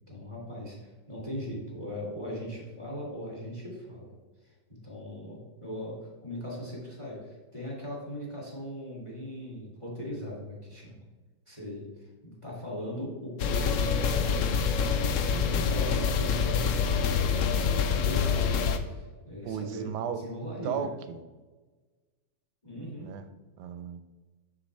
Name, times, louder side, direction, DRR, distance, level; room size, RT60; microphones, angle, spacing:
voice 1, 0.1-4.1 4.4-4.5 4.8-11.0 11.5-18.6 18.9-20.9 22.6-23.1, equal, 15° left, -4 dB, 2.0 m, -39 dB
sound 1, 13.4-18.8, left 6 dB, 80° left, 0.7 m, -26 dB
voice 2, 19.4-20.2 20.6-21.2 23.0-23.2 23.6-24.0, right 8 dB, 75° right, 9 dB, 1.1 m, -34 dB
7.3 x 6.4 x 3.2 m, 1.3 s
omnidirectional pair, 2.0 m